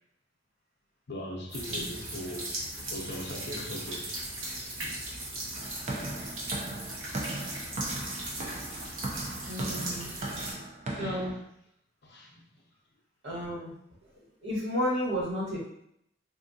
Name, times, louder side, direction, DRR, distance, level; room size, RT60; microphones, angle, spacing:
voice 1, 1.1-2.6 2.9-4.2 4.8-5.1 10.5-10.7 11.0-11.3 12.0-12.5, equal, 55° left, 0.6 m, -40 dB
sound 1, 1.5-10.5, right 1 dB, 80° right, 1.0 m, -38 dB
sound 2, 5.6-11.4, right 2 dB, 35° right, 0.5 m, -38 dB
voice 2, 9.5-10.1 11.0-11.4 13.2-13.7 14.4-15.7, equal, 65° right, 1.3 m, -32 dB
3.5 x 2.5 x 2.7 m
head